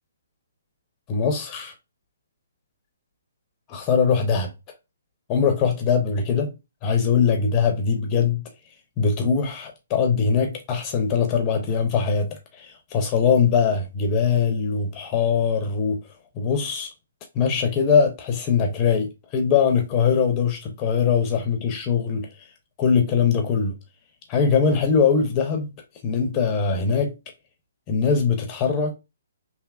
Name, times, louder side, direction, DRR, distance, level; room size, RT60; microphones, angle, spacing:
voice 1, 1.1-1.7 3.7-4.5 5.3-6.5 6.8-8.4 9.0-16.0 16.4-16.9 17.3-22.5 22.8-23.8 24.3-25.7 26.0-27.1 27.9-28.9, left 6 dB, 25° left, 0.5 m, -22 dB
3.3 x 2.7 x 2.4 m
hypercardioid pair, 145°, 0 cm